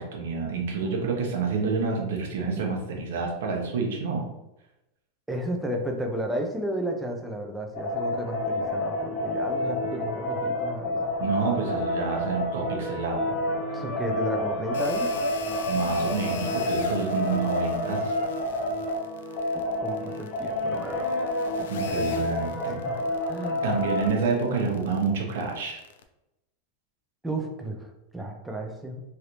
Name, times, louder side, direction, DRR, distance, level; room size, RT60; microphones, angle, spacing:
voice 1, 0.0-4.3 11.2-13.3 15.7-18.1 21.7-22.8 23.6-25.8, right 4 dB, 75° right, 1 dB, 0.8 m, -28 dB
voice 2, 5.3-11.1 13.7-15.1 19.5-21.0 21.6-21.7 22.0-22.3 22.9-23.6 27.2-29.0, right 1 dB, 5° right, 1 dB, 0.4 m, -33 dB
sound 1, 7.7-24.1, left 1 dB, 30° left, 0.8 m, -29 dB
sound 2, 14.7-26.0, left 7 dB, 85° left, 0.4 m, -44 dB
3.2 x 2.5 x 2.9 m, 0.93 s
supercardioid pair, 175°, 0 cm